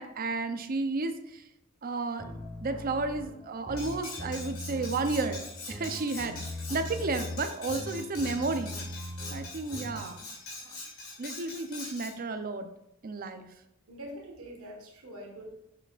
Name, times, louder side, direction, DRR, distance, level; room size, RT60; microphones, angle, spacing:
voice 1, 0.0-1.4 1.8-2.2 2.6-5.4 5.7-6.4 6.7-8.8 9.3-10.2 10.7-10.8 11.2-12.7 13.0-13.5, right 3 dB, 45° right, 8 dB, 0.5 m, -32 dB
sound 1, 2.2-10.1, left 1 dB, 15° left, 1.4 m, -40 dB
Cutlery silverware, 3.8-12.1, left 3 dB, 75° left, 2.5 m, -43 dB
voice 2, 13.9-15.5, equal, 85° right, 0 dB, 1.4 m, -44 dB
7.3 x 6.7 x 2.4 m, 0.82 s
head